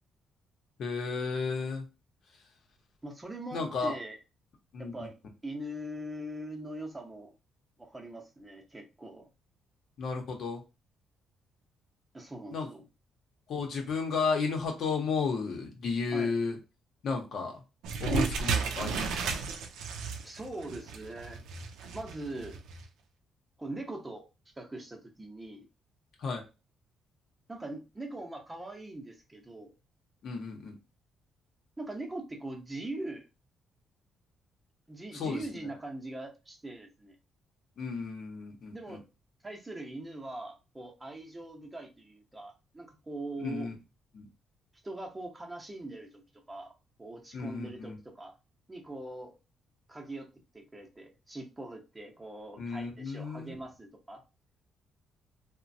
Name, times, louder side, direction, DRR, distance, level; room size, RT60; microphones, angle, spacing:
voice 1, 0.8-1.9 3.5-3.9 4.7-5.1 10.0-10.6 12.5-12.7 13.5-16.6 17.0-17.6 18.0-19.4 26.2-26.4 30.2-30.8 35.1-35.4 35.7-35.8 37.8-39.0 43.4-43.7 44.1-44.3 47.3-48.0 52.6-53.5, left 4 dB, 65° left, 2 dB, 0.8 m, -33 dB
voice 2, 3.0-4.2 4.8-5.2 5.4-7.3 7.8-9.3 12.1-12.8 16.1-16.3 20.2-21.4 21.9-22.6 23.6-24.2 24.6-25.7 27.5-29.7 31.8-33.2 34.9-37.2 38.7-39.0 39.4-43.7 44.8-48.3 48.7-49.4 49.9-54.2, right 1 dB, 15° right, 2 dB, 0.7 m, -42 dB
sound 1, 17.8-22.9, right 5 dB, 85° right, 0.5 m, -33 dB
3.0 x 2.2 x 2.6 m, 0.29 s
cardioid pair, 90°, 0 cm